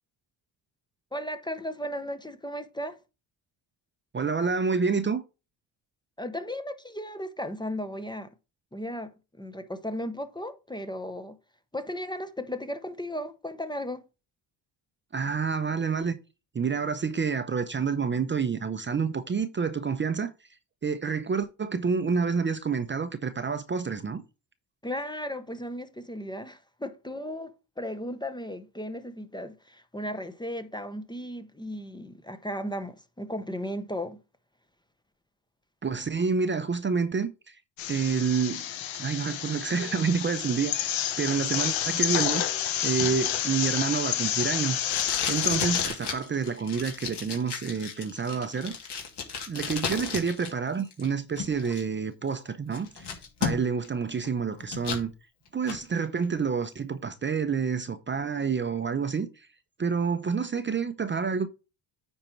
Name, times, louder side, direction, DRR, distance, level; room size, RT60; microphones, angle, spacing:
voice 1, 1.1-3.0 6.2-8.3 8.7-9.1 9.4-11.4 11.7-14.0 24.8-34.2, equal, 10° left, 0.8 m, -35 dB
voice 2, 4.1-5.2 15.1-16.2 16.5-20.3 20.8-24.2 35.8-37.6 37.9-38.6 39.0-42.4 42.8-45.0 45.3-49.1 49.5-53.1 53.4-55.1 55.5-59.5 59.8-61.5, right 5 dB, 25° right, 0.7 m, -28 dB
sound 1, 37.8-45.9, left 11 dB, 85° left, 1.2 m, -29 dB
Packing tape duct tape, 43.0-50.5 50.8-51.8 52.3-52.4 52.7-53.9 54.2-55.0 55.5-55.8, left 6 dB, 60° left, 2.9 m, -34 dB
9.5 x 4.5 x 4.5 m
cardioid pair, 100°, 45 cm